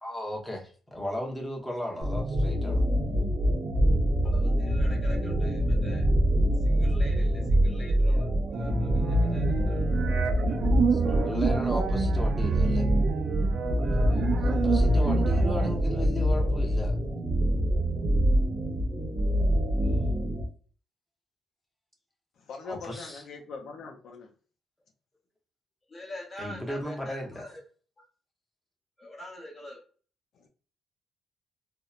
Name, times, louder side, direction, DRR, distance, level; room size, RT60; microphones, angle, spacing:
voice 1, 0.0-2.8 10.9-12.8 14.3-17.0 22.6-23.2 26.4-27.4, left 1 dB, 5° left, 0.8 m, -36 dB
sound 1, 2.0-20.5, equal, 40° right, 0.7 m, -25 dB
voice 2, 4.2-6.1 6.6-8.3 8.5-9.8 13.8-14.7 19.8-20.1 25.9-27.6 28.0-28.1 29.0-29.8, left 1 dB, 35° left, 1.1 m, -45 dB
Robot RIff, 8.5-15.7, right 6 dB, 60° right, 0.4 m, -30 dB
voice 3, 22.4-24.3 30.3-30.5, left 4 dB, 70° left, 0.4 m, -42 dB
2.8 x 2.0 x 2.3 m
cardioid pair, 90°, 0 cm